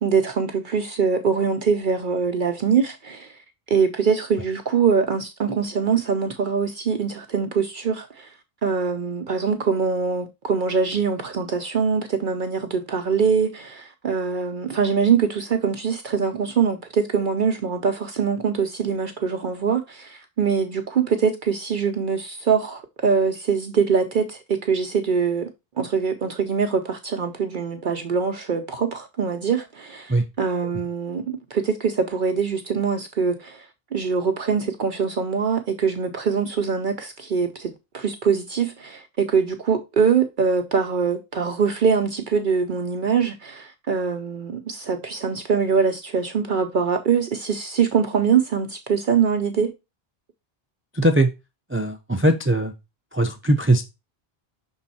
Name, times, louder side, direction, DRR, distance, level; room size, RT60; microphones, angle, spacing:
voice 1, 0.0-3.4 3.7-8.3 8.6-25.5 25.8-33.7 33.9-49.7, right 6 dB, 55° right, 0.8 m, -23 dB
voice 2, 50.9-51.3 51.7-52.7 53.1-53.8, right 1 dB, 20° right, 0.4 m, -20 dB
6.2 x 3.7 x 4.1 m
omnidirectional pair, 1.0 m